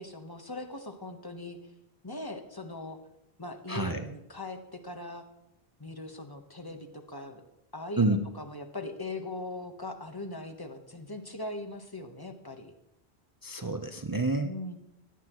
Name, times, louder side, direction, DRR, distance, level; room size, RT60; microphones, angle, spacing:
voice 1, 0.0-1.6 2.0-3.0 3.4-5.2 5.8-7.4 7.7-12.7 14.4-14.7, left 2 dB, 20° left, 5 dB, 1.1 m, -40 dB
voice 2, 3.7-4.1 8.0-8.3 13.4-14.5, right 2 dB, 25° right, 6 dB, 0.6 m, -28 dB
16.5 x 12.0 x 3.1 m, 0.84 s
omnidirectional pair, 1.1 m